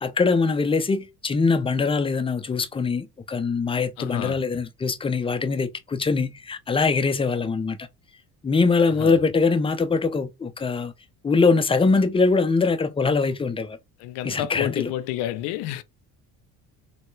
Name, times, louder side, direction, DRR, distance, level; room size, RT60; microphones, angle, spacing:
voice 1, 0.0-7.9 8.4-10.9 11.2-13.8 14.2-14.9, left 4 dB, 15° left, 0.4 m, -22 dB
voice 2, 4.0-4.4 8.9-9.2 14.0-15.8, left 13 dB, 80° left, 0.5 m, -30 dB
3.1 x 2.1 x 3.1 m
cardioid pair, 95°, 39 cm